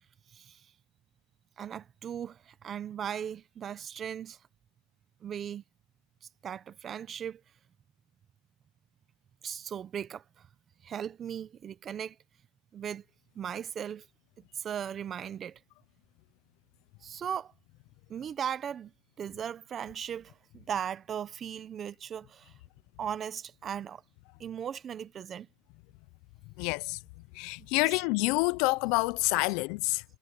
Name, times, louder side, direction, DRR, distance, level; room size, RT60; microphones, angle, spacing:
voice 1, 0.3-0.7 1.6-4.4 5.2-5.6 6.2-7.4 9.4-10.5 10.8-12.2 12.7-13.0 13.3-14.1 14.4-15.6 17.0-17.5 18.1-18.9 19.2-22.5 23.0-24.0 24.4-25.5 27.6-27.7, right 8 dB, 20° right, 0.7 m, -38 dB
voice 2, 26.6-27.0 27.3-30.0, left 25 dB, 45° left, 0.4 m, -28 dB
supercardioid pair, 175°, 0 cm